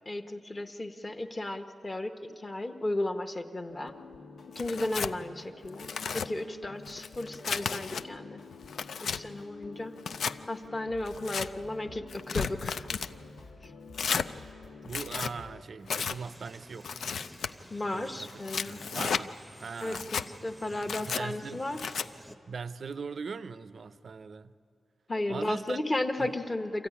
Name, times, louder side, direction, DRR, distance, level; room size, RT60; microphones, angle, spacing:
voice 1, 0.1-3.9 4.5-5.9 6.1-8.4 9.0-13.0 13.6-13.7 17.7-18.8 19.8-21.8 25.1-26.9, left 1 dB, 20° left, 0.9 m, -34 dB
sound 1, 3.7-15.6, left 4 dB, 90° left, 1.6 m, -49 dB
Tearing, 4.6-5.1 5.7-6.3 6.9-8.0 8.5-9.2 10.0-10.4 11.1-11.5 12.1-13.1 13.9-14.3 14.8-15.3 15.9-16.2 16.8-17.5 18.2-19.2 19.8-20.3 20.8-21.2 21.8-22.1, left 6 dB, 65° left, 0.5 m, -33 dB
voice 2, 14.8-17.0 17.9-20.1 21.1-21.7 22.5-24.5 25.3-25.8 26.2-26.3, right 5 dB, 50° right, 0.5 m, -40 dB
sound 2, 16.1-22.4, equal, 5° right, 0.7 m, -51 dB
26.5 x 14.0 x 10.0 m
wide cardioid pair, 165°, 0 cm